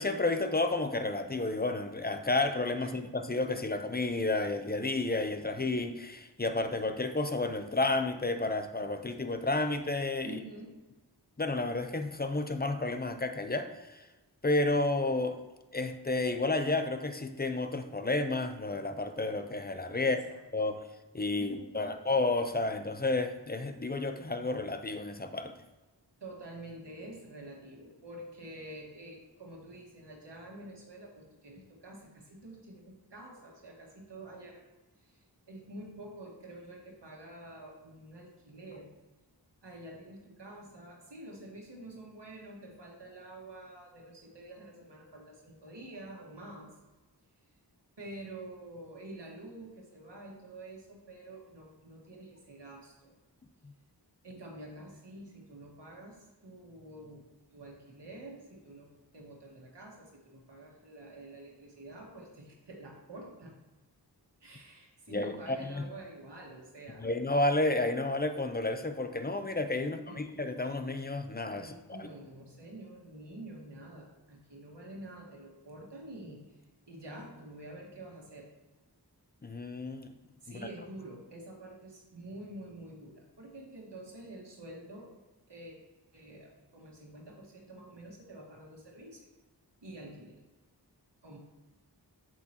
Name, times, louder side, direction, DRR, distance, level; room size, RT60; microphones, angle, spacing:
voice 1, 0.0-10.4 11.4-14.0 14.4-15.4 15.7-20.2 20.5-20.9 21.1-25.6 65.1-65.3 65.8-65.9 67.0-72.1 79.4-80.1 80.5-80.6, left 2 dB, 25° left, 8 dB, 0.7 m, -31 dB
voice 2, 10.2-10.8 20.0-20.4 21.3-22.0 26.2-34.6 35.0-38.9 39.6-46.7 48.0-53.1 54.2-63.5 64.4-67.1 69.8-70.3 71.6-76.6 76.8-78.5 80.4-85.2 85.5-85.7 86.1-89.3 89.8-90.4 91.2-91.4, right 1 dB, 85° right, -1 dB, 1.7 m, -48 dB
7.7 x 7.4 x 2.9 m, 1.1 s
wide cardioid pair, 60°, 41 cm